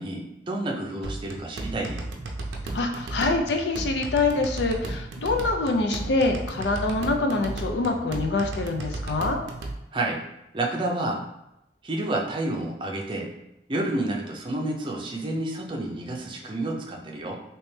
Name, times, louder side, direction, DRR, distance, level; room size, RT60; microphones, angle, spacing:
voice 1, 0.0-2.0 9.9-10.2 10.5-11.2 11.8-13.4 13.7-17.4, right 2 dB, 30° right, -1 dB, 0.5 m, -29 dB
sound 1, 1.0-9.8, right 2 dB, 85° right, 0.5 m, -34 dB
voice 2, 2.7-9.4, left 3 dB, 75° left, 4 dB, 0.5 m, -25 dB
3.2 x 3.0 x 3.2 m, 0.86 s
head